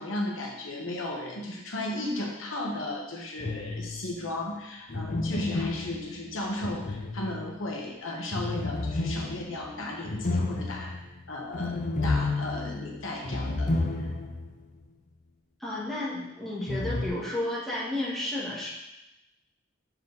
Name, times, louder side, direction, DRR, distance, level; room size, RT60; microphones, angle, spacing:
voice 1, 0.0-10.9 11.3-13.7, left 1 dB, 75° left, 0 dB, 1.1 m, -35 dB
sound 1, 3.4-4.1 4.9-7.7 8.3-14.5 14.8-14.9 16.7-17.1, left 2 dB, 35° left, 0.6 m, -31 dB
voice 2, 15.6-18.7, left 1 dB, ahead, -8 dB, 1.6 m, -32 dB
6.9 x 4.5 x 3.9 m, 0.93 s
head